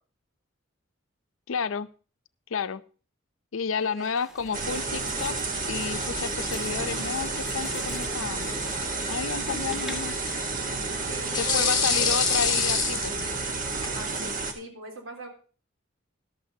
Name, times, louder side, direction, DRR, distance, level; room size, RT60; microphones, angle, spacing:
voice 1, 1.5-1.9 2.5-2.8 3.5-5.4 5.7-8.7 9.1-10.1 11.4-13.1, left 6 dB, 80° left, 13 dB, 0.6 m, -31 dB
voice 2, 3.8-4.2 9.7-10.0 11.1-12.4 13.9-15.3, right 2 dB, 80° right, 1 dB, 3.5 m, -39 dB
sound 1, 4.0-10.3, equal, 5° right, 1.3 m, -45 dB
sound 2, 4.5-14.5, right 3 dB, 45° right, 1.3 m, -31 dB
sound 3, 4.7-14.0, left 5 dB, 20° left, 1.8 m, -31 dB
13.5 x 12.0 x 2.8 m, 0.38 s
head